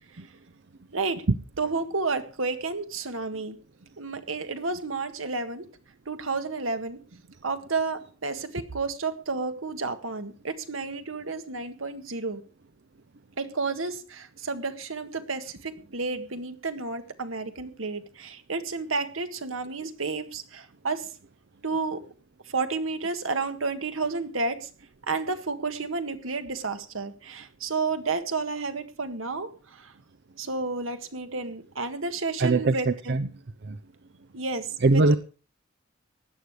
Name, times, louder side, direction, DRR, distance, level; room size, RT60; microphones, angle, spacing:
voice 1, 0.9-1.2 1.6-3.6 4.0-5.7 6.0-7.0 7.4-12.4 13.4-21.1 21.6-22.0 22.5-24.7 25.1-29.9 30.4-33.2 34.3-35.0, right 4 dB, 80° right, 9 dB, 1.8 m, -31 dB
voice 2, 32.4-32.8 33.1-33.3 33.7-33.8 34.8-35.2, right 3 dB, 55° right, 10 dB, 0.7 m, -20 dB
16.5 x 11.0 x 4.9 m, 0.36 s
head